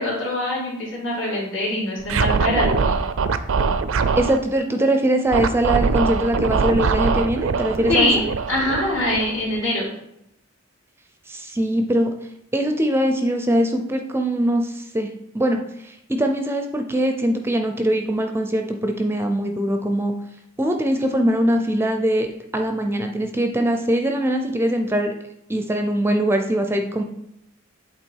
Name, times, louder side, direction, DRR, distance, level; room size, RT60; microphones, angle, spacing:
voice 1, 0.0-3.0 7.9-9.9, left 1 dB, 70° left, -6 dB, 2.6 m, -23 dB
Scratching (performance technique), 2.0-4.4 5.3-9.6, right 4 dB, 85° right, 0.5 m, -22 dB
voice 2, 4.2-8.1 11.3-12.1 12.5-15.1 15.3-20.1 20.6-22.3 22.5-25.1 25.5-27.0, right 1 dB, 10° right, 5 dB, 0.5 m, -22 dB
8.1 x 3.6 x 4.6 m, 0.79 s
head